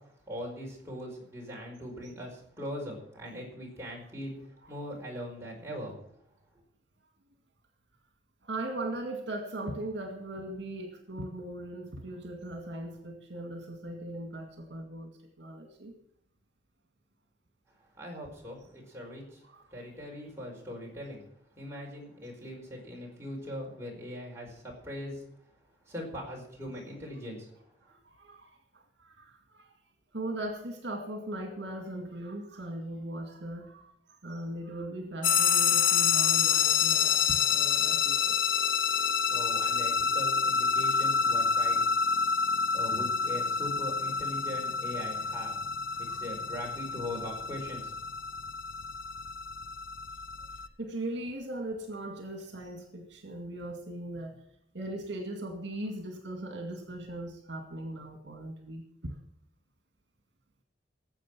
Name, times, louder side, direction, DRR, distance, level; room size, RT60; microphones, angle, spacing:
voice 1, 0.3-6.0 17.8-19.4 19.7-21.2 21.6-25.2 25.8-27.6 39.3-41.8 42.7-47.9, equal, 15° right, -2 dB, 4.9 m, -41 dB
voice 2, 8.4-15.1 15.4-15.9 19.5-19.6 27.8-29.7 30.1-33.9 34.2-38.4 38.9-39.0 45.9-46.2 50.8-54.4 54.7-59.2, right 1 dB, 70° right, 4 dB, 2.1 m, -39 dB
sound 1, 35.2-50.7, left 6 dB, 80° left, 0.9 m, -28 dB
18.5 x 7.7 x 6.1 m, 0.73 s
head